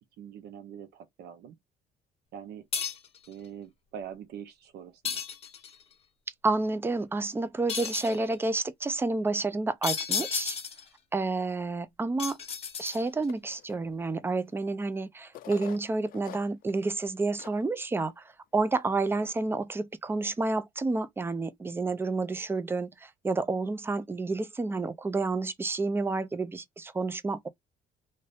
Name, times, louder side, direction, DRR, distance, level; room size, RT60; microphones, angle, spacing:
voice 1, 0.2-1.6 2.3-2.6 3.3-5.2 19.1-19.3, right 8 dB, 75° right, 0.8 m, -44 dB
sound 1, 2.7-3.2 5.0-5.8 7.7-8.2 9.8-10.9 12.2-13.2, left 7 dB, 35° left, 0.8 m, -33 dB
voice 2, 6.4-10.6 11.1-12.4 12.8-18.2 18.5-27.5, right 3 dB, 15° right, 0.4 m, -30 dB
sound 2, 13.3-13.8 14.5-14.6 15.3-16.8 17.1-17.2 17.4-17.6 18.1-18.2 18.8-19.2, left 13 dB, 60° left, 0.4 m, -45 dB
2.6 x 2.6 x 3.3 m
cardioid pair, 110°, 17 cm